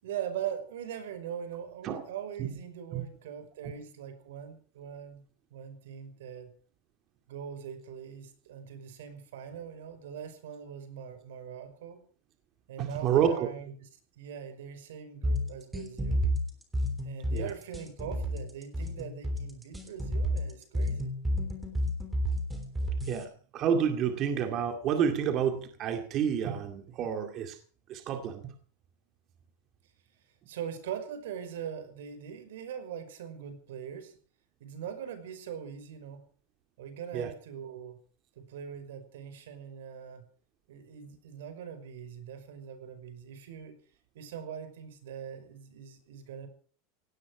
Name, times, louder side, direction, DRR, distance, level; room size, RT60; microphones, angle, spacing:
voice 1, 0.0-6.5 7.3-12.0 12.7-13.9 14.2-16.2 17.0-21.2 30.5-34.1 34.6-36.3 36.8-38.0 38.4-40.2 40.7-43.8 44.1-46.5, right 8 dB, 90° right, 9 dB, 5.4 m, -41 dB
voice 2, 12.8-13.5 17.3-17.5 23.1-27.6 27.9-28.5 37.1-37.3, right 8 dB, 30° right, 6 dB, 2.2 m, -29 dB
sound 1, 15.2-23.2, equal, 5° right, 3.3 m, -31 dB
18.0 x 16.0 x 4.9 m, 0.42 s
supercardioid pair, 170°, 0 cm